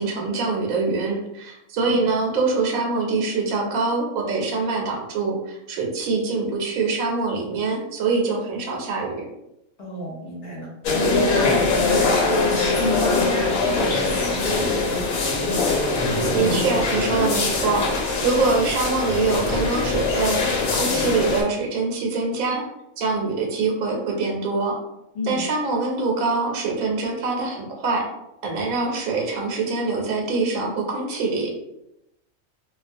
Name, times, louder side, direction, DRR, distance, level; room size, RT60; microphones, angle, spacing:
voice 1, 0.0-9.1 16.3-20.4 20.7-22.6 23.0-24.8 25.2-28.0 28.4-31.5, right 4 dB, 85° right, 0 dB, 1.0 m, -24 dB
voice 2, 9.8-10.7 11.3-15.1 25.1-25.4, left 1 dB, 55° left, -4 dB, 0.8 m, -31 dB
sound 1, 10.8-21.4, left 3 dB, 85° left, 1.0 m, -22 dB
2.3 x 2.3 x 2.5 m, 0.87 s
omnidirectional pair, 1.4 m